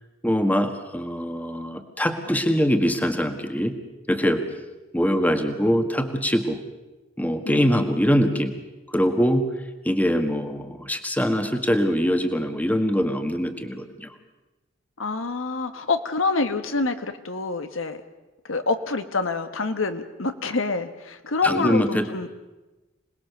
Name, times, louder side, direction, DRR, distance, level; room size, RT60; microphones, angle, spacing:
voice 1, 0.2-3.8 4.1-4.4 4.9-6.6 7.2-8.5 8.9-9.5 9.8-14.1 21.4-22.3, equal, 10° left, 6 dB, 1.6 m, -23 dB
voice 2, 15.0-18.0 18.5-22.3, left 3 dB, 75° left, 8 dB, 1.4 m, -26 dB
26.5 x 20.0 x 6.8 m, 1.1 s
head